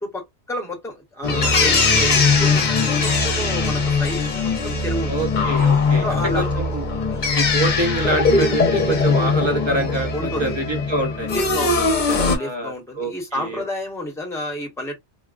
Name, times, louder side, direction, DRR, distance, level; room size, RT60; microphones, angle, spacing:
voice 1, 0.0-5.3 6.0-6.5 7.1-7.4 10.1-10.5 11.2-15.0, left 1 dB, 5° left, 1.1 m, -30 dB
sound 1, 1.2-12.4, left 4 dB, 45° left, 0.8 m, -20 dB
voice 2, 5.1-6.1 6.3-6.9 7.3-11.3 12.4-13.6, right 1 dB, 25° right, 1.0 m, -26 dB
3.8 x 2.3 x 2.4 m
omnidirectional pair, 1.2 m